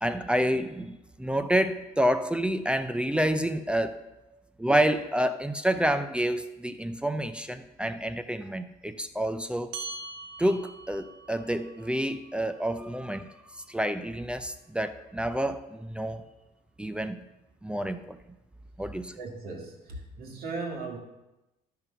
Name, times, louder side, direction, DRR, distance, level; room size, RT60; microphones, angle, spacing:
voice 1, 0.0-4.0 4.6-9.8 10.4-13.3 13.7-16.2 16.8-17.2 17.6-18.2 18.8-19.1, equal, 5° right, 10 dB, 0.5 m, -28 dB
sound 1, 9.7-14.5, right 3 dB, 85° right, 1.0 m, -45 dB
voice 2, 19.2-21.0, right 3 dB, 65° right, 1 dB, 2.1 m, -37 dB
11.0 x 5.7 x 5.4 m, 0.96 s
cardioid pair, 110°, 17 cm